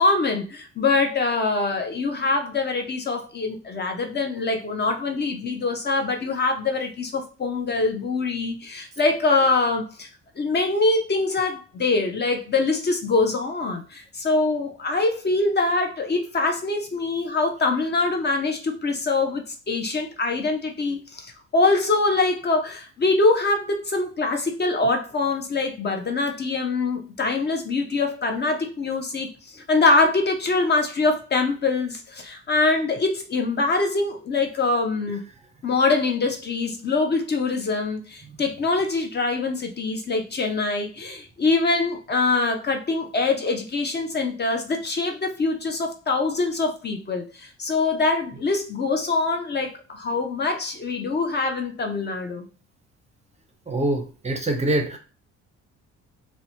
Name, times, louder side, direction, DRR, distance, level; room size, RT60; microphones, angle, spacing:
voice 1, 0.0-10.1 10.4-35.2 35.6-52.5, left 3 dB, 35° left, 4 dB, 0.5 m, -24 dB
voice 2, 53.7-55.0, right 1 dB, 20° right, 4 dB, 0.5 m, -24 dB
2.7 x 2.1 x 2.7 m, 0.34 s
cardioid pair, 90°, 30 cm